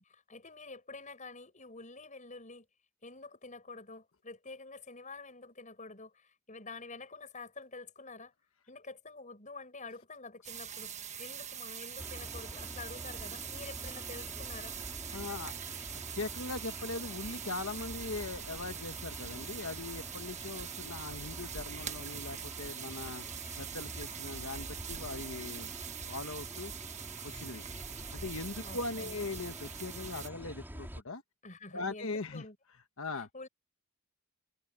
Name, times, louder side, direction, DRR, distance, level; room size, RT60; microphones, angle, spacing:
voice 1, 0.0-2.7 3.0-8.3 8.7-10.9 11.2-14.8 28.6-29.1 31.4-32.6 33.1-33.5, left 3 dB, 35° left, 7.6 m, -48 dB
sound 1, 10.4-30.3, right 9 dB, 30° right, 1.3 m, -43 dB
sound 2, 12.0-31.0, equal, 10° right, 3.9 m, -47 dB
voice 2, 15.1-15.5 15.9-23.3 23.6-25.7 26.1-26.7 27.2-27.6 28.1-31.2 31.7-32.4 33.0-33.3, left 3 dB, 65° left, 1.4 m, -40 dB
head